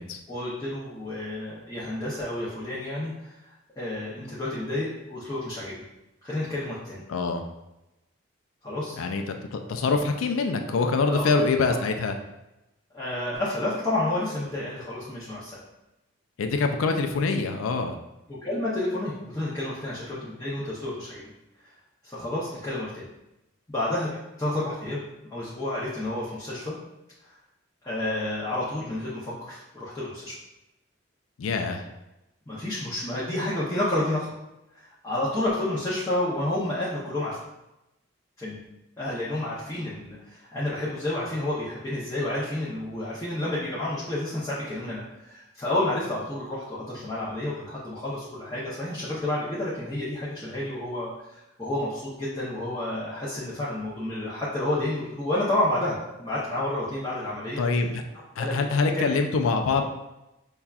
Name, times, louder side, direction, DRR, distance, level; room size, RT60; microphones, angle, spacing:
voice 1, 0.3-5.7 6.2-7.0 8.6-9.0 11.1-11.4 12.9-15.6 18.3-21.3 22.0-23.0 23.7-24.1 24.4-25.0 25.3-26.7 27.8-30.4 32.5-34.3 34.8-37.4 38.4-38.6 39.0-57.6 58.4-58.5 58.9-59.2, left 1 dB, 15° left, -9 dB, 0.6 m, -30 dB
voice 2, 7.1-7.4 9.0-9.2 9.5-12.1 16.4-18.0 31.4-31.8 57.6-58.0 58.4-59.9, left 4 dB, 90° left, 5 dB, 0.4 m, -25 dB
5.5 x 2.3 x 2.3 m, 0.94 s
head